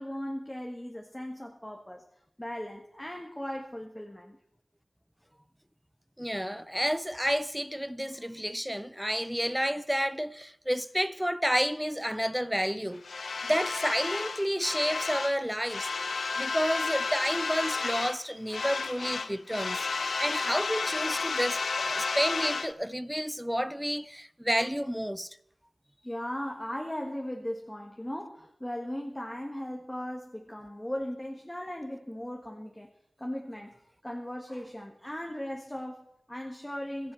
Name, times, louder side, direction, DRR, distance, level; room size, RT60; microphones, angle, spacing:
voice 1, 0.0-2.0 2.4-4.4 26.0-32.9 33.2-33.7 34.0-37.1, left 1 dB, 15° left, 1.4 m, -37 dB
voice 2, 6.2-13.0 13.5-15.9 16.4-19.9 20.2-25.4, equal, 5° right, 0.5 m, -30 dB
sound 1, 13.0-15.4 15.6-18.2 18.5-22.7, left 4 dB, 75° left, 0.6 m, -32 dB
16.0 x 14.5 x 4.5 m
wide cardioid pair, 70°, 0 cm